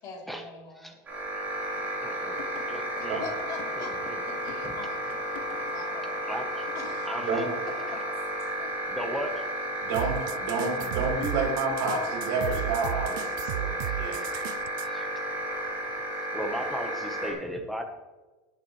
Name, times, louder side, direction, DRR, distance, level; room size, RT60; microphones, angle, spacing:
voice 1, 0.0-1.0 1.7-1.9 2.6-2.7 3.0-4.0 4.2-5.4 5.7-6.2 6.7-7.1 7.9-8.0 8.6-8.7, left 4 dB, 35° left, -2 dB, 3.4 m, -43 dB
sound 1, 1.1-17.3, right 1 dB, 15° right, 4.0 m, -33 dB
voice 2, 2.0-3.2 3.8-4.2 4.6-4.7 6.3-6.7 7.1-7.5 8.9-9.6 13.7-15.2 15.8-16.0 16.3-17.8, equal, ahead, 4 dB, 1.1 m, -37 dB
sound 2, 2.4-5.9 6.3-6.4 6.7-6.9, left 7 dB, 75° left, 1.6 m, -46 dB
voice 3, 9.8-13.7 14.0-14.2, right 3 dB, 55° right, -4 dB, 3.9 m, -29 dB
sound 3, 9.9-14.9, right 15 dB, 85° right, 0.5 m, -34 dB
19.0 x 8.3 x 3.2 m, 1.2 s
cardioid pair, 170°, 10 cm